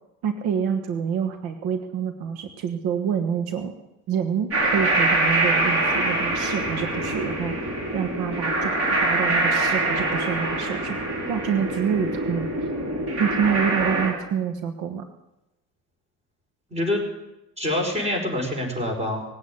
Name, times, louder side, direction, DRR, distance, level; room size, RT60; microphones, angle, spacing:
voice 1, 0.2-3.7 4.1-11.0 11.3-12.5 13.2-15.1, right 7 dB, 70° right, 7 dB, 1.4 m, -27 dB
sound 1, 4.5-14.1, right 2 dB, 35° right, 4.8 m, -24 dB
voice 2, 16.7-17.0 17.6-19.2, left 1 dB, 15° right, 3 dB, 4.9 m, -25 dB
19.0 x 8.7 x 8.6 m, 0.95 s
cardioid pair, 115°, 38 cm